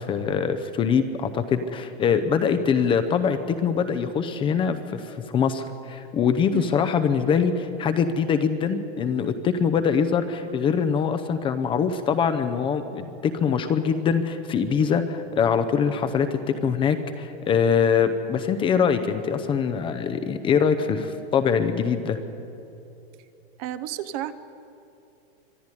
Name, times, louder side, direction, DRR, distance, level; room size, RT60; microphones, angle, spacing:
voice 1, 0.0-22.2, left 6 dB, 15° left, 9 dB, 0.7 m, -23 dB
voice 2, 23.6-24.3, right 12 dB, 35° right, 12 dB, 0.8 m, -31 dB
24.0 x 12.0 x 9.8 m, 2.7 s
supercardioid pair, 150°, 31 cm